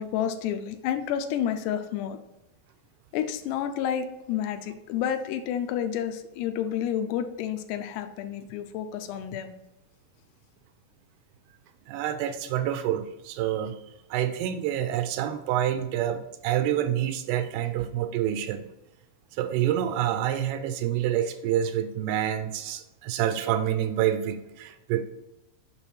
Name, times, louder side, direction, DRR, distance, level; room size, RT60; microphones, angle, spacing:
voice 1, 0.0-2.2 3.1-9.6, left 9 dB, 85° left, 7 dB, 2.8 m, -30 dB
voice 2, 11.9-13.8 14.1-18.6 19.3-25.1, right 11 dB, 80° right, 9 dB, 2.5 m, -27 dB
6.9 x 5.7 x 4.5 m, 0.93 s
omnidirectional pair, 4.9 m